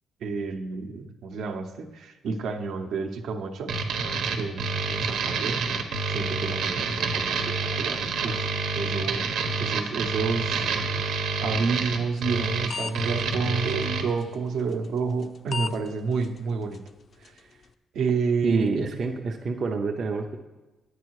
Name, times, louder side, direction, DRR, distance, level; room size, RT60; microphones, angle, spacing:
voice 1, 0.2-3.7 4.4-5.6 6.1-8.5 8.7-10.7 11.4-16.8 17.2-17.4 17.9-18.9, right 5 dB, 65° right, 6 dB, 0.9 m, -30 dB
sound 1, 3.7-14.0, right 4 dB, 90° right, 1.2 m, -28 dB
sound 2, 12.2-12.4 12.7-12.9 13.2-13.3 14.2-14.3 15.2-15.3 15.5-15.7 16.2-16.3 16.7-16.8 17.3-17.4, left 5 dB, 35° left, 0.4 m, -31 dB
voice 2, 18.4-20.4, right 4 dB, 35° right, 2 dB, 0.6 m, -27 dB
10.5 x 8.5 x 4.7 m, 1.1 s
cardioid pair, 175°, 0 cm